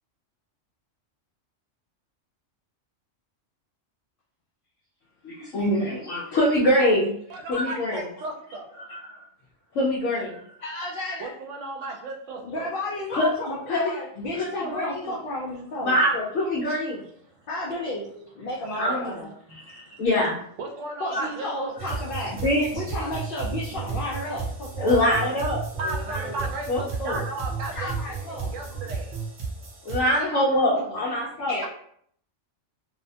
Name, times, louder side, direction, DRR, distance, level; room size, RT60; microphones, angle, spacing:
voice 1, 5.2-7.1 7.5-8.1 8.9-9.2 9.7-10.4 13.1-13.3 13.7-14.0 14.4-15.1 15.8-17.0 18.8-19.2 19.5-20.4 21.1-21.2 22.3-22.8 24.8-26.4 26.7-27.2 29.8-31.6, left 1 dB, 85° left, -5 dB, 1.0 m, -24 dB
voice 2, 7.3-8.7 11.2-12.7 17.3-17.4 19.5-19.9 20.2-22.0 23.7-23.8 25.8-27.9 28.3-29.1, right 2 dB, 75° right, 2 dB, 0.9 m, -35 dB
voice 3, 10.6-11.3 12.4-16.0 16.6-16.7 17.5-18.1 18.3-19.3 21.0-22.3 22.7-25.4 27.7-28.5 30.2-31.0 31.5-31.7, left 1 dB, 60° left, -4 dB, 0.6 m, -32 dB
sound 1, 21.8-30.0, right 4 dB, 50° right, 0.7 m, -33 dB
2.7 x 2.1 x 2.6 m, 0.65 s
omnidirectional pair, 1.3 m